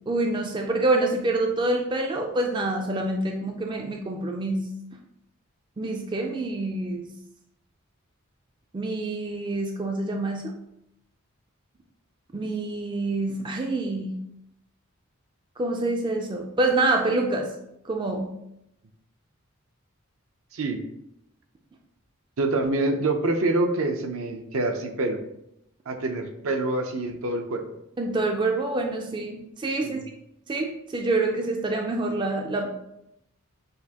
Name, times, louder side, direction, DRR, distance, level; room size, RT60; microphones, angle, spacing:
voice 1, 0.1-4.6 5.8-7.1 8.7-10.5 12.3-14.1 15.6-17.5 17.9-18.3 28.0-30.0 30.5-32.7, right 2 dB, 20° right, 2 dB, 0.3 m, -26 dB
voice 2, 20.5-20.8 22.4-25.3 25.9-27.6 29.8-30.0, right 2 dB, 70° right, 5 dB, 0.6 m, -26 dB
6.6 x 2.4 x 2.8 m, 0.80 s
head